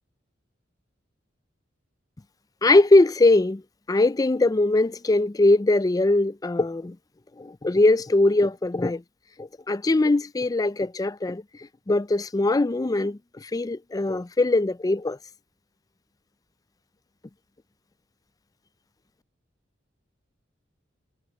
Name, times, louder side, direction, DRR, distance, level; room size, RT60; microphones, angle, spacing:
voice 1, 2.6-3.6 3.9-7.0 7.4-9.0 9.4-11.4 11.9-15.2, left 2 dB, 20° left, 0.4 m, -21 dB
head